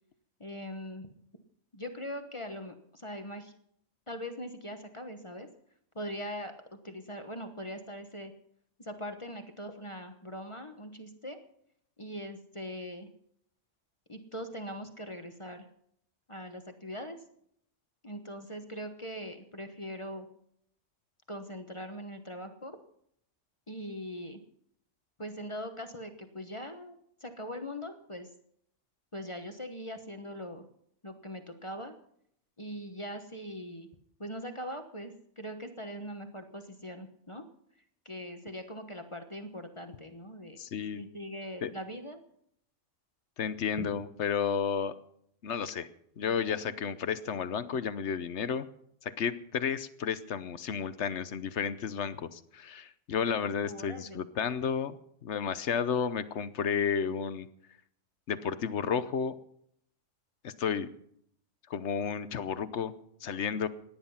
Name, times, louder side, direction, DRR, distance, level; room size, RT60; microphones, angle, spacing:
voice 1, 0.4-1.1 1.7-3.5 4.1-5.5 5.9-6.5 6.8-8.3 8.8-11.4 12.0-13.1 14.1-15.7 16.3-17.2 18.0-20.3 21.3-22.8 23.7-24.4 25.2-28.3 29.1-30.6 31.0-31.9 32.6-33.9 34.2-37.4 38.0-40.6 40.9-42.2 43.8-43.9 53.6-54.2, equal, 25° left, 6 dB, 1.1 m, -41 dB
voice 2, 40.6-41.0 41.6-41.7 43.4-44.9 45.4-45.9 46.2-48.7 49.0-55.0 55.2-57.5 58.3-59.3 60.4-60.9 61.7-62.9 63.2-63.7, left 7 dB, 65° left, 14 dB, 1.1 m, -32 dB
18.0 x 10.5 x 5.7 m, 0.69 s
omnidirectional pair, 1.3 m